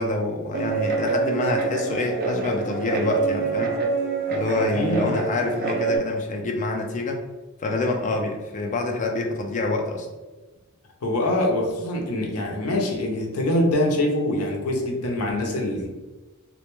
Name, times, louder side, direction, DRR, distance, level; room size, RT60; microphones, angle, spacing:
voice 1, 0.0-3.8 4.3-7.2 7.6-10.1, left 2 dB, 35° left, 2 dB, 0.4 m, -26 dB
Guitar, 0.5-6.0, right 4 dB, 45° right, 0.4 m, -26 dB
voice 2, 4.7-5.2 11.0-15.9, left 1 dB, 90° left, 1 dB, 0.6 m, -24 dB
2.2 x 2.1 x 2.9 m, 1.2 s
head